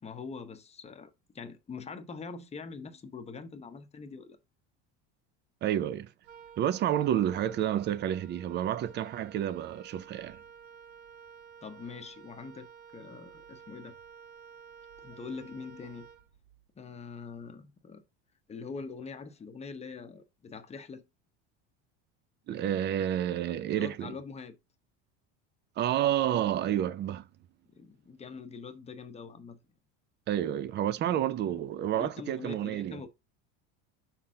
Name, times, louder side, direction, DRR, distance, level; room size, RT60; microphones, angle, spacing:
voice 1, 0.0-4.4 11.6-12.7 12.9-13.9 15.0-16.1 16.8-18.0 18.5-21.0 23.7-24.6 27.7-29.6 31.1-31.2 31.9-33.1, left 5 dB, 20° left, 0.8 m, -43 dB
voice 2, 5.6-6.1 6.6-10.4 22.5-24.1 25.8-27.2 30.3-33.0, right 11 dB, 30° right, 0.5 m, -30 dB
Wind instrument woodwind instrument, 6.2-16.7, right 7 dB, 70° right, 1.0 m, -52 dB
6.0 x 4.2 x 3.7 m
supercardioid pair, 130°, 34 cm